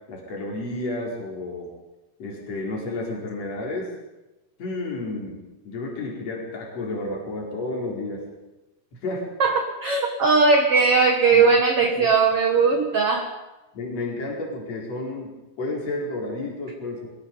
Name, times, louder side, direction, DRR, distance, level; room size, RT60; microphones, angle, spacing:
voice 1, 0.1-1.7 2.2-3.9 4.6-5.4 5.7-8.3 9.0-9.2 11.3-11.5 11.8-12.1 13.7-15.3 15.6-17.1, left 2 dB, 40° left, -2 dB, 5.5 m, -31 dB
voice 2, 9.4-13.3, right 4 dB, 50° right, 4 dB, 1.8 m, -19 dB
23.0 x 20.5 x 5.5 m, 1.0 s
omnidirectional pair, 4.6 m